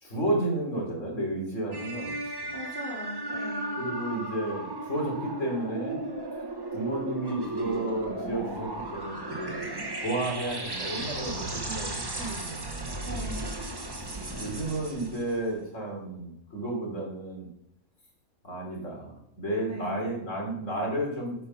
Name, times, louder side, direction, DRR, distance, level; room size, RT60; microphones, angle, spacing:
voice 1, 0.0-2.1 3.8-6.0 6.7-13.3 14.0-14.1 14.4-17.5 18.4-21.4, right 1 dB, 55° left, -1 dB, 3.7 m, -32 dB
sound 1, 1.7-15.5, right 1 dB, 20° right, 0.9 m, -35 dB
voice 2, 2.5-3.8 13.0-13.5 19.7-20.0, equal, 40° right, -3 dB, 3.2 m, -39 dB
11.5 x 6.1 x 5.7 m, 0.77 s
omnidirectional pair, 1.5 m